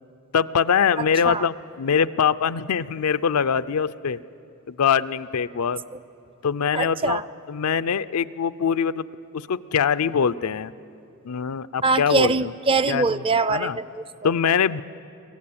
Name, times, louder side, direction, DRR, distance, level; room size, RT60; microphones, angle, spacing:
voice 1, 0.3-4.2 4.7-5.8 6.4-7.2 7.5-9.1 9.3-10.7 11.2-12.3 12.9-13.2 13.5-13.8 14.2-14.8, left 7 dB, 85° left, 14 dB, 0.5 m, -23 dB
voice 2, 1.0-1.5 6.7-7.2 11.8-14.3, right 3 dB, 25° right, 16 dB, 0.4 m, -23 dB
25.0 x 15.5 x 8.6 m, 2.7 s
head